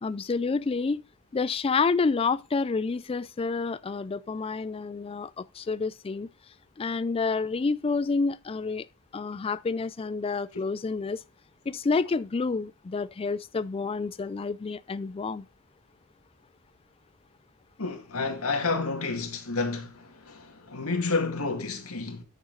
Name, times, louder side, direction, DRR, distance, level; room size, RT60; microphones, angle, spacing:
voice 1, 0.0-1.0 1.3-6.3 6.8-8.8 9.1-11.2 11.7-15.4, left 4 dB, 25° left, 0.3 m, -29 dB
voice 2, 17.8-22.2, left 3 dB, 80° left, 2.1 m, -30 dB
8.8 x 6.7 x 3.9 m
head